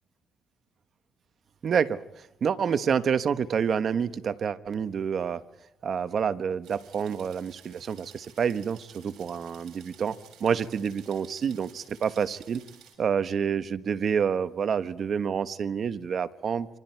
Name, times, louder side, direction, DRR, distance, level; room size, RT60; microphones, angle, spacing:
voice 1, 1.6-2.0 2.4-5.4 5.8-12.6 13.0-16.7, right 7 dB, 55° right, 12 dB, 1.2 m, -28 dB
sound 1, 6.6-13.0, right 8 dB, 80° right, 6.9 m, -54 dB
27.5 x 26.0 x 4.6 m, 0.86 s
cardioid pair, 90°, 0 cm